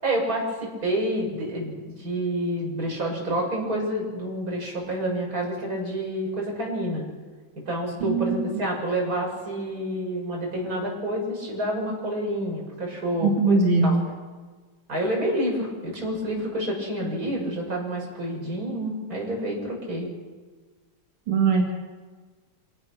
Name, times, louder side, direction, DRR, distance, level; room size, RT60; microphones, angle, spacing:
voice 1, 0.0-7.0 7.7-14.0 14.9-20.1, right 1 dB, 40° right, -2 dB, 6.9 m, -28 dB
voice 2, 8.0-8.5 13.2-13.9 21.3-21.6, right 4 dB, 85° right, 0 dB, 3.0 m, -21 dB
27.0 x 18.5 x 6.2 m, 1.4 s
omnidirectional pair, 2.4 m